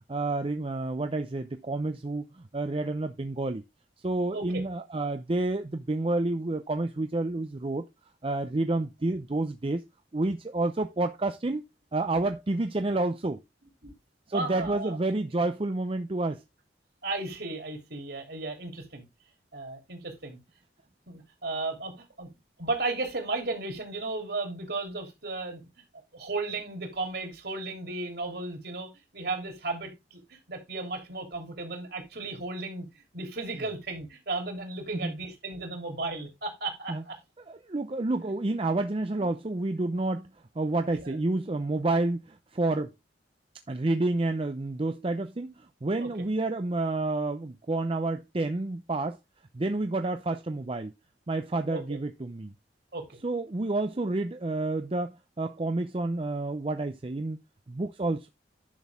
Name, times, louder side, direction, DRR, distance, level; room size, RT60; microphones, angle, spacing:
voice 1, 0.1-3.6 4.0-7.8 8.2-9.9 10.1-11.6 11.9-13.4 14.3-16.4 33.6-33.7 34.9-35.1 36.9-37.0 37.5-42.9 43.7-49.2 49.5-50.9 51.3-52.5 53.2-57.4 57.7-58.3, right 2 dB, 30° right, 0.5 m, -29 dB
voice 2, 14.3-15.0 17.0-19.0 19.5-20.4 21.1-22.3 22.6-25.7 26.1-32.9 33.1-37.2 39.2-39.3 41.0-41.2 46.0-46.1 51.7-52.0 52.9-53.2, right 3 dB, 60° right, 3.1 m, -35 dB
10.5 x 6.3 x 3.5 m
head